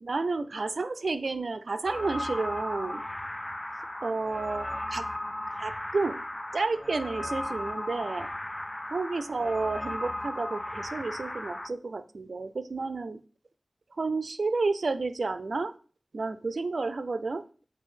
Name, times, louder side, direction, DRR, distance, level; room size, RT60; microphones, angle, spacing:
voice 1, 0.0-3.0 4.0-5.0 5.6-6.2 6.5-8.3 8.9-13.2 14.0-15.7 16.1-17.5, right 3 dB, 75° right, 13 dB, 0.5 m, -31 dB
sound 1, 1.8-11.7, left 1 dB, 20° left, 0.5 m, -36 dB
8.2 x 3.4 x 5.7 m, 0.39 s
wide cardioid pair, 55°, 0 cm